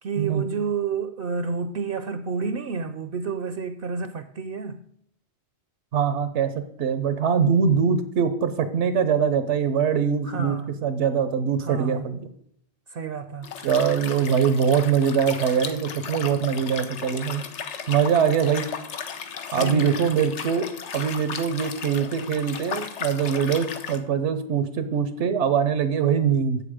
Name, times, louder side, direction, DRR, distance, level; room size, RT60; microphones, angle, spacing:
voice 1, 0.0-4.8 10.2-10.7 11.6-12.1 12.9-13.5 19.5-20.1, right 4 dB, 60° right, 0.7 m, -30 dB
voice 2, 5.9-6.5 6.8-10.6 10.8-12.2 13.6-17.4 17.9-18.7 19.5-20.7 20.9-26.6, right 7 dB, 80° right, 1.0 m, -23 dB
Liquid, 13.4-24.0, left 7 dB, 90° left, 1.1 m, -35 dB
7.9 x 6.9 x 4.9 m
omnidirectional pair, 1.2 m